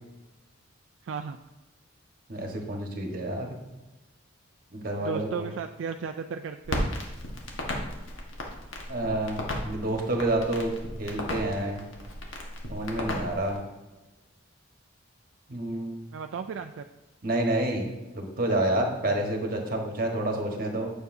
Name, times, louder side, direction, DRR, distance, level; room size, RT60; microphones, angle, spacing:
voice 1, 1.0-1.4 5.0-6.9 16.1-16.9, right 6 dB, 70° right, 6 dB, 0.3 m, -35 dB
voice 2, 2.3-3.6 4.7-5.4 8.9-11.8 12.7-13.6 15.5-16.0 17.2-20.9, right 1 dB, 50° right, 2 dB, 1.3 m, -29 dB
Crackle, 6.6-13.6, left 1 dB, 85° left, 1.4 m, -35 dB
9.3 x 6.7 x 2.7 m, 1.1 s
head